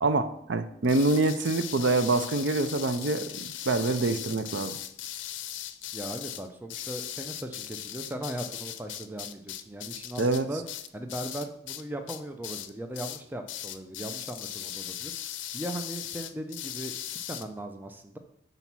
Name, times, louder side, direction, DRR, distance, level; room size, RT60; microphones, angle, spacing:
voice 1, 0.0-3.4 3.7-4.8 10.2-10.5, right 2 dB, 75° right, 10 dB, 0.5 m, -25 dB
sound 1, 0.8-11.8 12.1-12.7 12.9-13.2 13.5-17.4, left 11 dB, 85° left, 0.5 m, -38 dB
voice 2, 5.9-10.6 10.9-15.1 15.5-16.9 17.3-18.2, right 1 dB, 10° right, 6 dB, 0.4 m, -38 dB
5.7 x 4.0 x 6.0 m, 0.71 s
head